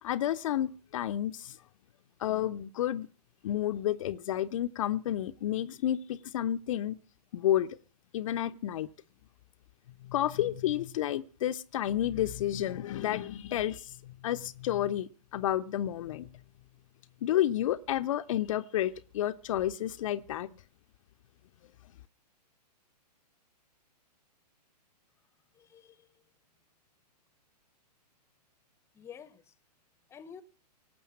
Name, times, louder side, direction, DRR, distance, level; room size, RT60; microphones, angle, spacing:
voice 1, 0.0-1.6 2.2-3.1 3.4-7.0 7.3-7.8 8.1-8.9 10.0-16.3 17.2-20.5, left 12 dB, 50° left, 0.6 m, -31 dB
voice 2, 25.5-26.2 28.9-29.5 30.1-30.4, left 7 dB, 10° left, 0.8 m, -50 dB
17.5 x 6.9 x 8.4 m
hypercardioid pair, 120°, 21 cm